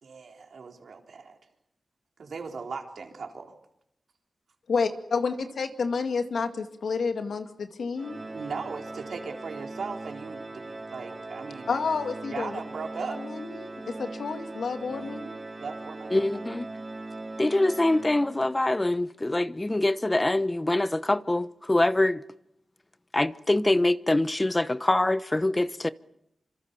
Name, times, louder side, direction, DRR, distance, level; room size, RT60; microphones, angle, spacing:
voice 1, 0.0-1.4 2.2-3.5 8.3-11.9 12.3-13.2 14.9-15.3 15.6-16.2, right 5 dB, 80° right, 3.9 m, -38 dB
voice 2, 4.7-8.2 11.7-12.6 13.2-15.4, left 5 dB, 85° left, 2.2 m, -30 dB
Organ, 8.0-18.7, right 2 dB, 40° right, 3.6 m, -40 dB
voice 3, 16.1-16.7 17.4-22.2 23.1-25.9, left 1 dB, 25° left, 1.0 m, -24 dB
26.5 x 25.5 x 7.0 m
cardioid pair, 60°, 0 cm